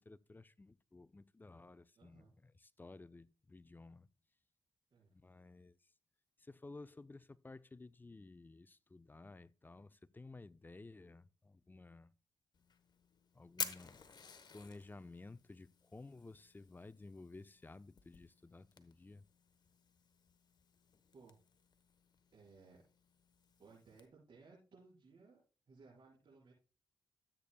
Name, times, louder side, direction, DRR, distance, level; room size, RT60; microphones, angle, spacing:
voice 1, 0.0-4.1 5.1-5.8 6.4-12.1 13.3-14.0 14.5-19.2, left 3 dB, 20° left, 0.5 m, -55 dB
voice 2, 1.9-2.3 4.9-5.1 21.1-21.4 22.3-22.8 23.6-25.4 25.7-26.5, right 4 dB, 60° right, 4.8 m, -61 dB
Fire, 12.5-24.1, left 5 dB, 50° left, 1.0 m, -52 dB
13.0 x 8.3 x 2.3 m
supercardioid pair, 55°, 9 cm